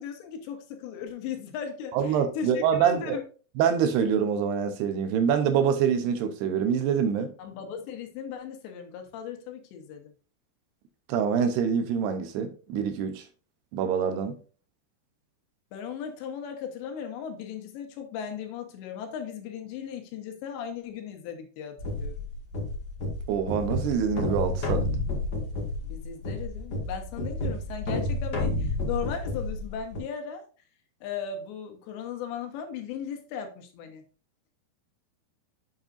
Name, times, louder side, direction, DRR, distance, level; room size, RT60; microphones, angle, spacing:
voice 1, 0.0-3.2 7.4-10.1 15.7-22.2 25.8-30.5 31.0-34.0, left 7 dB, 80° left, 3.4 m, -37 dB
voice 2, 1.9-3.2 3.6-7.3 11.1-13.2 13.7-14.4 23.3-24.9, right 7 dB, 75° right, 2.7 m, -25 dB
sound 1, 21.8-30.0, left 1 dB, 55° left, 1.0 m, -31 dB
8.1 x 7.1 x 2.5 m
omnidirectional pair, 5.0 m